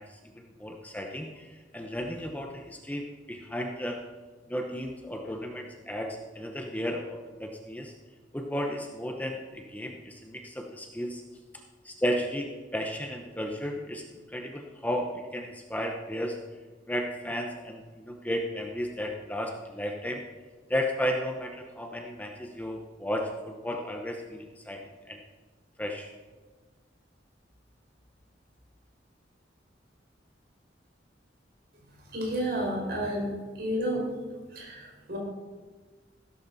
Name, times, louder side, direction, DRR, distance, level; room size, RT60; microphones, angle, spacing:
voice 1, 0.0-4.0 4.5-7.9 8.3-11.2 11.5-16.4 16.9-20.2 20.7-25.2 25.8-26.1, equal, 10° left, 3 dB, 0.9 m, -34 dB
voice 2, 32.1-33.3 33.6-34.0 34.5-35.2, equal, 55° right, -1 dB, 5.1 m, -30 dB
15.5 x 13.0 x 4.2 m, 1.4 s
head